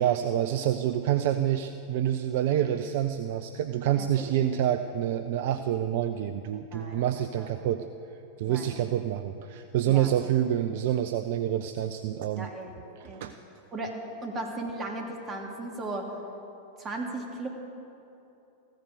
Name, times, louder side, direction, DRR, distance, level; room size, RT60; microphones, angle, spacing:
voice 1, 0.0-7.8 8.4-12.5 13.0-13.3, right 11 dB, 50° right, 9 dB, 0.5 m, -27 dB
voice 2, 4.0-4.3 6.7-7.0 7.4-7.5 8.5-8.7 9.9-10.1 12.4-12.7 13.0-13.2 13.7-13.9 14.2-16.1 16.8-17.5, right 2 dB, 25° right, 1 dB, 2.7 m, -36 dB
15.0 x 13.5 x 6.6 m, 2.9 s
figure-of-eight pair, 90°, 0 cm